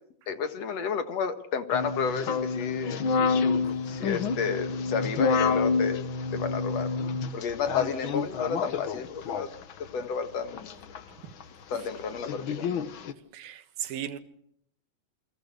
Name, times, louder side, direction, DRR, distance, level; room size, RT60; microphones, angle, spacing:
voice 1, 0.3-3.0 3.9-6.0 6.3-7.0 7.3-9.5 9.9-10.7 11.7-12.7, left 6 dB, 55° left, 2.4 m, -31 dB
sound 1, 1.7-9.7 10.5-11.0 11.4-11.5 11.8-13.1, left 5 dB, 70° left, 1.2 m, -28 dB
voice 2, 13.3-14.2, right 10 dB, 80° right, 3.4 m, -36 dB
29.0 x 23.0 x 6.8 m
omnidirectional pair, 4.1 m